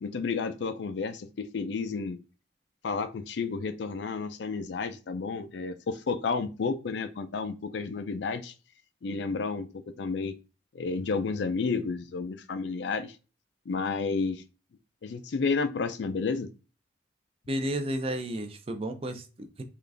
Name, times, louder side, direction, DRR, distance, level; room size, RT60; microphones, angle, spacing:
voice 1, 0.0-2.2 2.8-8.5 9.0-9.7 10.0-10.4 10.7-13.2 13.7-14.4 15.0-16.5, left 4 dB, 70° left, 0.4 m, -31 dB
voice 2, 17.5-19.6, right 1 dB, 30° right, 0.5 m, -32 dB
3.8 x 2.4 x 3.3 m
head